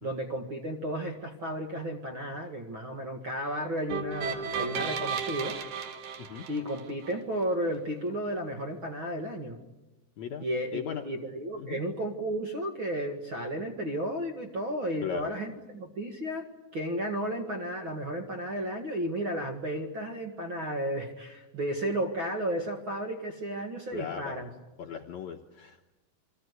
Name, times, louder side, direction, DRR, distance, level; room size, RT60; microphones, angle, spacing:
voice 1, 0.0-5.6 6.5-9.6 10.4-16.4 16.7-24.5, right 1 dB, 45° right, 3 dB, 1.9 m, -33 dB
sound 1, 3.9-7.1, right 6 dB, 60° right, 3.2 m, -34 dB
voice 2, 10.7-11.1 11.6-11.8 15.0-15.3 23.9-24.4 24.8-25.9, left 8 dB, 70° left, 3 dB, 1.8 m, -37 dB
29.0 x 22.5 x 8.2 m, 1.0 s
omnidirectional pair, 4.7 m